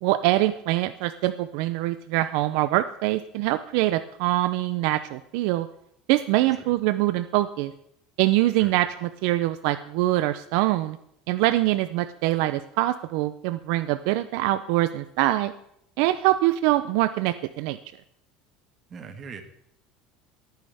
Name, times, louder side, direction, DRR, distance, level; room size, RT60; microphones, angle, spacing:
voice 1, 0.0-5.7 6.1-7.7 8.2-11.0 11.3-15.5 16.0-17.8, right 16 dB, 65° right, 12 dB, 0.5 m, -24 dB
voice 2, 18.9-19.5, right 5 dB, 25° right, 7 dB, 1.5 m, -40 dB
19.5 x 9.3 x 3.5 m, 0.73 s
cardioid pair, 170°, 0 cm